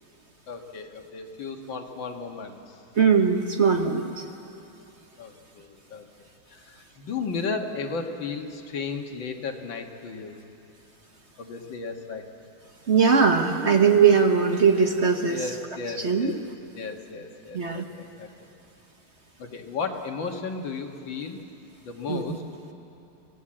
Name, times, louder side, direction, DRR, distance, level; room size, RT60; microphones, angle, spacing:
voice 1, 0.5-2.8 5.2-6.1 6.5-10.4 11.4-12.3 15.3-16.4 16.8-18.3 19.4-21.4 21.8-22.4, left 4 dB, 85° left, 4 dB, 2.3 m, -34 dB
voice 2, 3.0-4.2 12.9-15.5 16.0-16.4 17.5-17.8 22.1-22.2, right 6 dB, 45° right, 5 dB, 1.1 m, -20 dB
27.5 x 16.0 x 8.8 m, 2.8 s
omnidirectional pair, 2.0 m